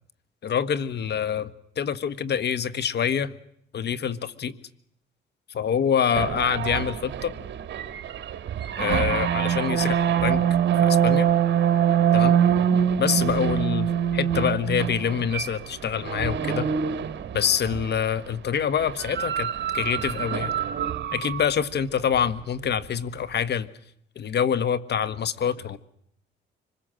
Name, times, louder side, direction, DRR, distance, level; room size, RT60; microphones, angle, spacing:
voice 1, 0.4-1.5 1.8-3.3 3.7-4.6 5.5-7.3 8.8-10.4 10.8-11.3 12.1-12.4 13.0-16.7 17.3-20.5 21.1-23.7 24.1-25.8, left 8 dB, 60° left, 15 dB, 1.4 m, -26 dB
sound 1, 6.1-18.0 18.8-21.4, right 9 dB, 60° right, 1.9 m, -24 dB
25.5 x 21.0 x 7.6 m, 0.71 s
cardioid pair, 90°, 20 cm